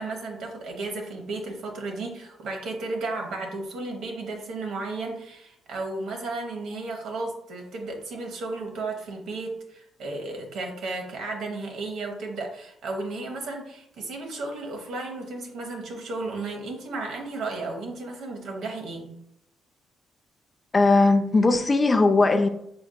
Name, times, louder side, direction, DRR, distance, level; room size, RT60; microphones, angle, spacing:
voice 1, 0.0-19.1, right 3 dB, 75° right, 1.0 m, -34 dB
voice 2, 20.7-22.5, left 3 dB, 25° left, 0.4 m, -19 dB
4.5 x 3.7 x 2.2 m
cardioid pair, 90°, 0 cm